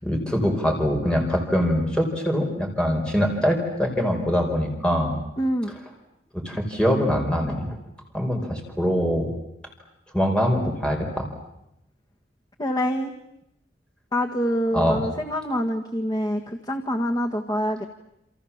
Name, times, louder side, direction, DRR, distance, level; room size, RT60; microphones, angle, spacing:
voice 1, 0.0-5.2 6.3-7.7 8.1-9.3 10.1-11.3 14.7-15.0, equal, 5° left, 1 dB, 4.7 m, -23 dB
voice 2, 5.4-5.7 12.6-13.1 14.1-17.9, equal, 25° left, 3 dB, 1.7 m, -25 dB
29.0 x 28.5 x 7.3 m, 0.82 s
head